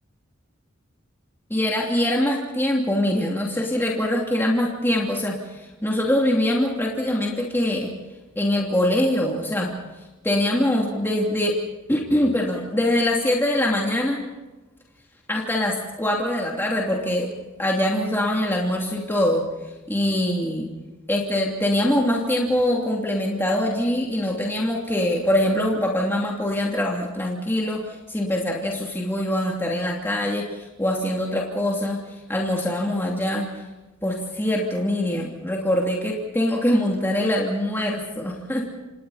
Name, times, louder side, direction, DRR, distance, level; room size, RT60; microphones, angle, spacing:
voice 1, 1.5-7.9 8.4-9.7 10.2-11.6 11.9-14.2 15.3-17.3 17.6-19.4 19.9-20.7 21.1-32.0 32.3-33.5 34.0-38.7, left 1 dB, 10° left, -2 dB, 2.9 m, -23 dB
29.0 x 27.5 x 4.3 m, 1.1 s
head